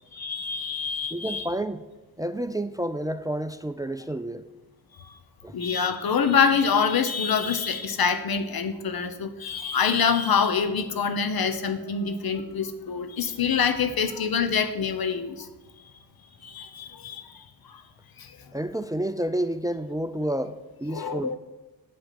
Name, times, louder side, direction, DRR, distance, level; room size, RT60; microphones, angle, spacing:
voice 1, 0.1-1.5 5.0-5.1 5.5-15.5 16.4-17.8 18.2-18.4 20.9-21.4, left 6 dB, 65° left, 9 dB, 1.0 m, -26 dB
voice 2, 1.1-1.8 2.2-4.4 5.4-5.5 18.5-21.3, right 1 dB, 10° right, 11 dB, 0.4 m, -30 dB
8.2 x 5.0 x 7.6 m, 1.1 s
cardioid pair, 55°, 39 cm